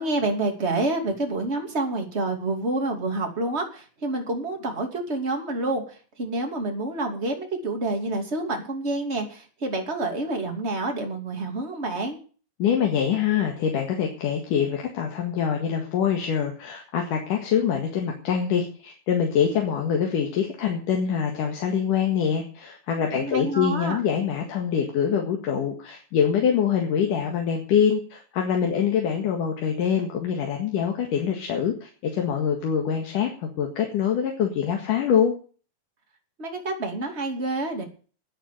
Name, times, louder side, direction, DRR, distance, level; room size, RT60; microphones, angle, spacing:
voice 1, 0.0-12.2 23.1-24.0 36.4-37.8, right 2 dB, 20° right, 3 dB, 2.9 m, -28 dB
voice 2, 12.6-35.3, left 8 dB, 80° left, 1 dB, 3.4 m, -24 dB
11.5 x 10.0 x 9.2 m, 0.40 s
omnidirectional pair, 3.7 m